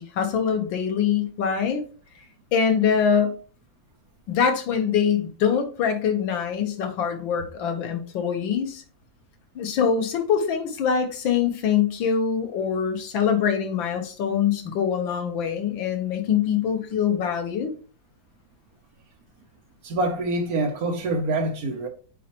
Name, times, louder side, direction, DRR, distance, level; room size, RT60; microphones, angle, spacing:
voice 1, 0.0-1.8 2.5-3.3 4.3-8.8 9.6-17.7, left 7 dB, 90° left, 1.8 m, -24 dB
voice 2, 19.8-21.9, right 2 dB, 60° right, 1.1 m, -25 dB
8.3 x 4.3 x 2.9 m
omnidirectional pair, 2.0 m